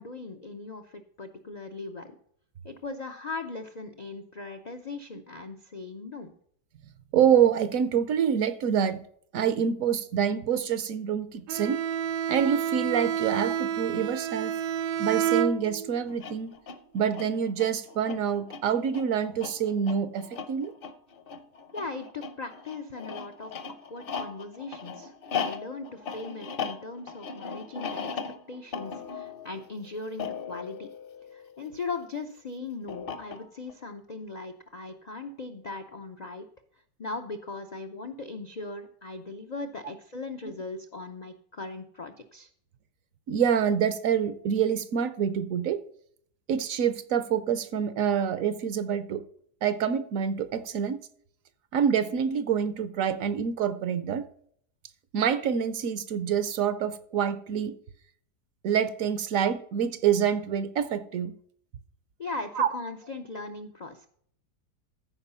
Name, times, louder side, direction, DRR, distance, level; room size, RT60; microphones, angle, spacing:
voice 1, 0.0-2.1 2.6-6.3 21.7-23.5 23.9-28.1 28.5-30.9 31.3-36.5 37.0-42.5 62.2-64.1, left 3 dB, 65° left, 5 dB, 0.4 m, -39 dB
voice 2, 7.1-9.0 9.3-11.8 12.3-14.5 15.0-16.5 16.9-20.7 43.3-45.8 46.5-49.2 49.6-51.0 51.7-54.2 55.1-57.7 58.6-61.3 62.5-62.7, right 8 dB, 65° right, 13 dB, 0.9 m, -26 dB
Bowed string instrument, 11.5-16.1, right 9 dB, 85° right, 1.2 m, -29 dB
sound 1, 16.1-31.9 32.9-33.7, left 6 dB, 45° left, 0.8 m, -38 dB
14.0 x 4.8 x 5.5 m, 0.64 s
omnidirectional pair, 1.7 m